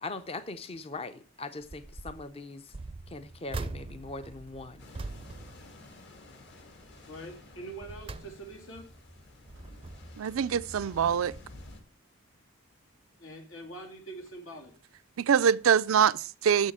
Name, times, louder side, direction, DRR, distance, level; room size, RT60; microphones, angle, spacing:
voice 1, 0.0-2.7 3.1-4.9, left 3 dB, 30° left, 0.5 m, -40 dB
sound 1, 1.6-2.3 2.7-6.4 6.7-7.0 7.5-8.8 9.3-10.3 10.9-11.1 11.4-11.5, right 3 dB, 25° right, 0.4 m, -42 dB
sound 2, 4.8-11.8, left 1 dB, 60° left, 1.8 m, -50 dB
voice 2, 7.1-8.9 13.2-14.7, right 2 dB, 85° left, 2.9 m, -44 dB
voice 3, 10.2-11.4 15.2-16.7, right 7 dB, 85° right, 0.4 m, -24 dB
7.3 x 6.4 x 7.3 m
head